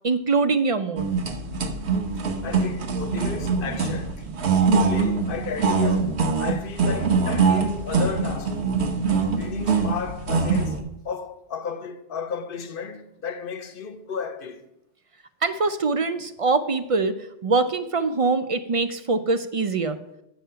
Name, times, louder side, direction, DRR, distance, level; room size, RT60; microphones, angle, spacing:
voice 1, 0.0-1.1 15.4-17.2 17.4-20.0, right 3 dB, 55° right, 0.4 m, -23 dB
sound 1, 1.0-10.8, right 4 dB, 75° right, 1.2 m, -23 dB
voice 2, 2.4-4.3 4.7-8.9 9.4-14.7, left 6 dB, 55° left, 0.9 m, -34 dB
8.8 x 7.1 x 5.6 m
omnidirectional pair, 1.1 m